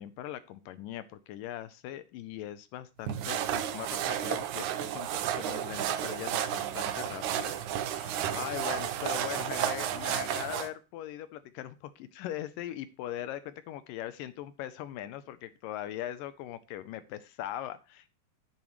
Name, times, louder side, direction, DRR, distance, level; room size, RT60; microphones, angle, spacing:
voice 1, 0.0-5.1 5.4-18.1, left 12 dB, 80° left, 13 dB, 2.2 m, -40 dB
sound 1, 3.1-10.7, right 10 dB, 70° right, 2.0 m, -32 dB
10.5 x 10.5 x 3.1 m, 0.30 s
omnidirectional pair, 4.1 m